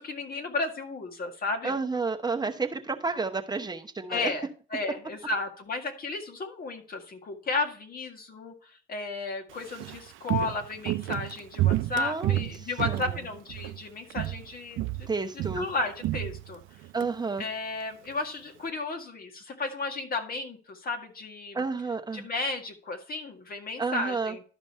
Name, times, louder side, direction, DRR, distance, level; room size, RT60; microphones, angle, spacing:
voice 1, 0.0-1.8 4.1-15.1 15.5-16.6 17.4-21.6 22.1-24.4, left 3 dB, 50° left, 4 dB, 1.9 m, -33 dB
voice 2, 1.6-4.3 12.0-13.1 15.1-15.7 16.9-17.5 21.5-22.3 23.8-24.3, right 4 dB, 20° right, 4 dB, 0.9 m, -31 dB
Walk footsteps, 9.5-13.8 14.1-14.5 14.8-17.1 17.4-17.5, right 16 dB, 85° right, 0.4 m, -30 dB
12.0 x 5.2 x 4.3 m, 0.39 s
cardioid pair, 90°, 20 cm